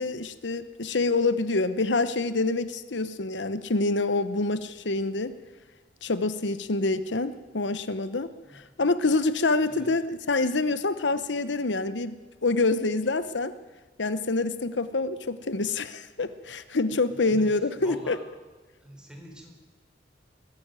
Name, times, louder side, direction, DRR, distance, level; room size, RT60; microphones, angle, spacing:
voice 1, 0.0-5.3 6.0-13.5 14.0-18.2, left 3 dB, 80° left, 13 dB, 1.0 m, -26 dB
voice 2, 17.8-18.2 18.8-19.5, equal, 5° right, 2 dB, 4.3 m, -44 dB
21.5 x 15.0 x 9.1 m, 1.3 s
head